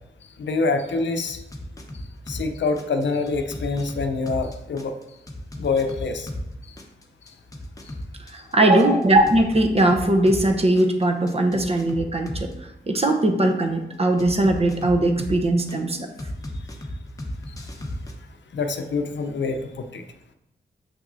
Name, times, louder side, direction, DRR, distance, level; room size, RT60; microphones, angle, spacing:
voice 1, 0.4-1.4 2.3-4.9 5.6-6.3 8.6-8.8 18.5-20.0, left 4 dB, 75° left, 6 dB, 0.6 m, -25 dB
sound 1, 1.3-2.5 2.8-6.5 6.8-10.5 10.8-12.5 14.2-15.8 16.2-18.1, left 1 dB, 20° left, 0.8 m, -34 dB
voice 2, 8.3-12.5 12.9-16.1, right 1 dB, 35° right, 4 dB, 0.8 m, -20 dB
6.9 x 6.0 x 2.6 m, 0.87 s
wide cardioid pair, 105°, 19 cm